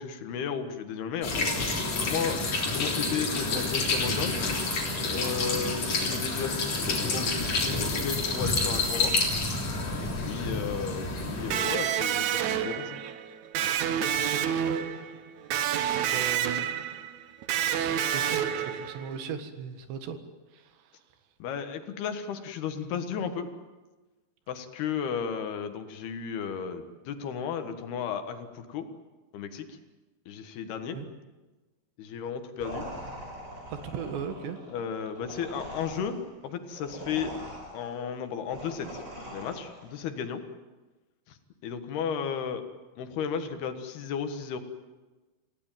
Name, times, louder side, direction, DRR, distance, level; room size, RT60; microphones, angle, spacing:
voice 1, 0.0-1.3 2.0-4.4 5.1-9.2 10.0-13.0 13.9-14.2 21.4-23.5 24.5-28.9 29.3-29.8 30.3-31.0 32.0-32.9 34.7-37.3 37.7-39.0 39.3-40.4 41.3-41.4 41.6-42.7 43.0-44.6, left 7 dB, 70° left, 8 dB, 3.5 m, -34 dB
sound 1, 1.2-11.6, left 3 dB, 40° left, 4.4 m, -29 dB
Electric guitar, 11.5-19.2, right 9 dB, 70° right, 1.8 m, -29 dB
voice 2, 14.1-14.6 15.7-16.7 17.6-20.2 20.5-20.7 30.9-31.1 33.7-34.6, right 7 dB, 85° right, 9 dB, 3.9 m, -38 dB
sound 2, 32.6-40.0, equal, 20° right, 4.3 m, -42 dB
28.0 x 17.0 x 9.1 m, 1.2 s
omnidirectional pair, 4.8 m